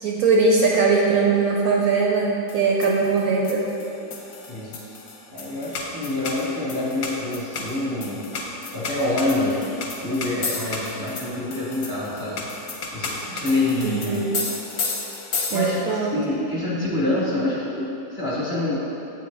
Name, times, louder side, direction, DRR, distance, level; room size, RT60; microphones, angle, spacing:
voice 1, 0.0-3.7 13.8-14.3 15.5-16.2, right 4 dB, 70° right, -2 dB, 0.9 m, -20 dB
sound 1, 2.5-16.0, left 3 dB, 65° left, 1.1 m, -33 dB
voice 2, 4.5-4.9 5.3-8.2 8.7-9.7 10.0-12.4 12.9-14.3 15.5-18.7, left 2 dB, 35° left, -8 dB, 1.0 m, -26 dB
7.9 x 3.9 x 3.3 m, 2.8 s
omnidirectional pair, 1.9 m